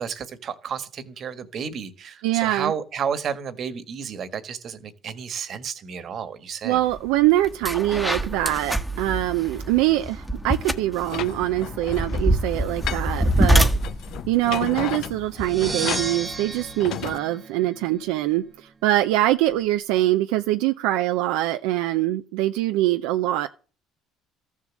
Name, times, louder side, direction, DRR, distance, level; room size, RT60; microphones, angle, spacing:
voice 1, 0.0-6.8, right 7 dB, 50° right, 1.6 m, -31 dB
voice 2, 2.2-2.7 6.6-13.7 14.3-23.5, right 15 dB, 85° right, 0.6 m, -23 dB
sound 1, 6.9-7.1 7.4-15.7, right 1 dB, ahead, 1.2 m, -25 dB
sound 2, 11.0-17.2, left 12 dB, 65° left, 0.5 m, -34 dB
sound 3, 15.3-18.2, right 4 dB, 20° right, 1.0 m, -34 dB
14.0 x 7.3 x 7.4 m
supercardioid pair, 90°, 0 cm